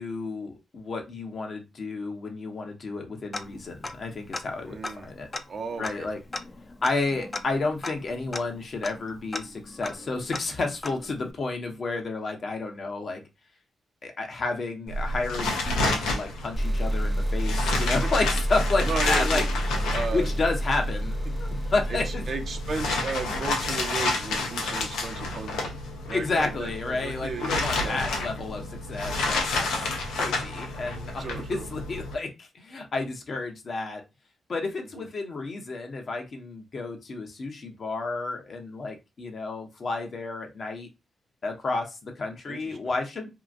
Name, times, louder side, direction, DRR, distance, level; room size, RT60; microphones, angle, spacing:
voice 1, 0.0-5.3 5.8-6.2 6.8-13.2 14.0-19.5 20.1-22.2 26.1-34.0 34.5-40.9 41.4-43.3, left 3 dB, 60° left, 0.9 m, -31 dB
Tick-tock, 3.3-4.1 4.3-4.4 4.8-11.3, left 2 dB, 35° left, 0.5 m, -38 dB
voice 2, 4.7-5.1 5.5-6.1 18.8-19.5 19.9-20.3 21.9-25.7 26.1-28.0 31.2-31.7 34.9-35.1 42.5-42.8, right 4 dB, 60° right, 0.7 m, -34 dB
sound 1, 14.9-32.1, left 2 dB, 85° left, 0.7 m, -30 dB
sound 2, 16.6-24.1, equal, 5° left, 0.8 m, -29 dB
2.8 x 2.4 x 2.4 m
supercardioid pair, 45°, 0 cm